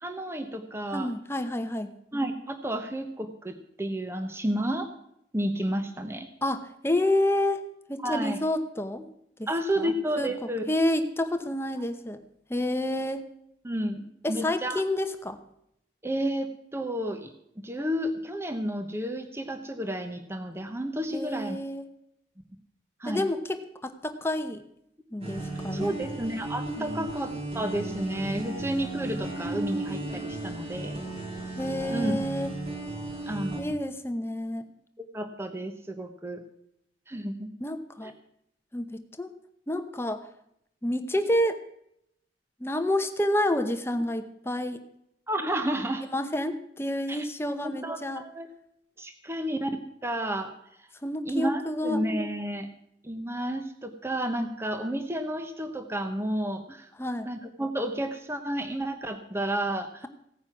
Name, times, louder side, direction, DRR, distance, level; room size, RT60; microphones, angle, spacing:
voice 1, 0.0-1.1 2.1-4.9 5.3-6.3 8.0-8.4 9.0-9.1 9.5-10.6 13.6-14.8 16.0-17.3 17.6-21.6 23.0-23.2 25.7-31.0 31.9-32.1 33.3-33.7 35.0-36.4 37.1-37.5 38.0-38.1 45.3-46.1 47.1-47.3 47.6-48.5 49.0-49.7 50.0-50.5 50.8-50.9 51.3-52.7 53.0-56.9 57.2-60.1, right 1 dB, 15° right, 6 dB, 1.0 m, -31 dB
voice 2, 0.9-1.9 6.4-7.6 7.9-9.0 9.4-9.5 9.8-10.3 10.7-12.2 12.5-13.3 14.2-15.4 21.1-21.8 23.0-24.6 25.1-25.9 26.8-27.0 31.6-32.5 33.6-34.6 37.6-38.1 38.7-39.3 39.7-40.3 40.8-41.6 42.6-44.8 46.1-48.2 51.0-52.0 57.0-57.3, left 1 dB, 15° left, 8 dB, 0.9 m, -29 dB
sound 1, 25.2-33.6, right 2 dB, 35° right, 4.3 m, -35 dB
16.5 x 9.5 x 6.0 m, 0.76 s
head